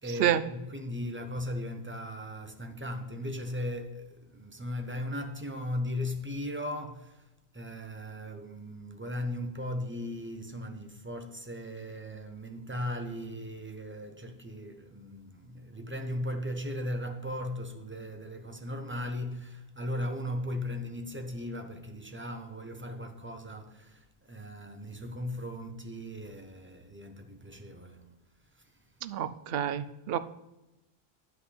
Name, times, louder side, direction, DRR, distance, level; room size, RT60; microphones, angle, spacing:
voice 1, 0.0-7.3 7.5-28.2 28.6-28.7, left 1 dB, 15° right, 0.7 m, -37 dB
voice 2, 29.0-30.2, right 10 dB, 70° right, 0.8 m, -28 dB
10.0 x 7.9 x 3.3 m
omnidirectional pair, 1.1 m